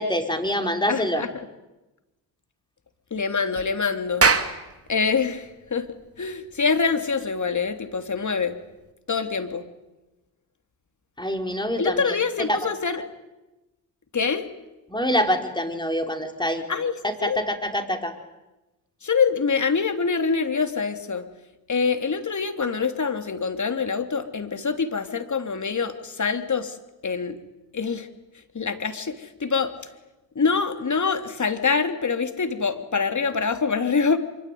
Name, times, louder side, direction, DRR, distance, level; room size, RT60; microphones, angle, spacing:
voice 1, 0.0-1.2 11.2-12.1 12.5-12.6 14.9-16.6 17.0-18.1, equal, 10° left, 5 dB, 5.2 m, -25 dB
voice 2, 0.9-1.5 3.1-4.3 4.9-8.6 9.1-9.6 11.8-13.0 14.1-14.5 16.7-17.4 19.0-21.3 21.7-26.8 27.0-27.4 27.7-28.1 28.5-29.7 30.3-34.2, left 5 dB, 35° left, 8 dB, 3.2 m, -25 dB
Clapping, 4.0-8.9, right 4 dB, 30° right, 2.6 m, -27 dB
25.5 x 24.5 x 9.5 m, 1.0 s
supercardioid pair, 55°, 48 cm